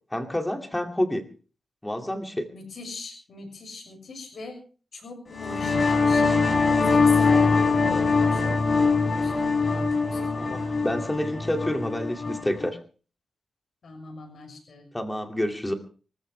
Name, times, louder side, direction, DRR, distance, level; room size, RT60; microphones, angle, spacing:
voice 1, 0.1-1.3 1.8-2.5 10.4-12.8 14.9-15.7, left 1 dB, 10° left, 5 dB, 2.4 m, -28 dB
voice 2, 2.5-4.6 4.9-6.4 6.8-10.5 13.8-14.8, left 3 dB, 60° left, 3 dB, 6.5 m, -41 dB
sound 1, 5.3-12.7, left 4 dB, 45° left, 3.9 m, -23 dB
25.0 x 14.5 x 3.3 m, 0.39 s
wide cardioid pair, 135°, 0 cm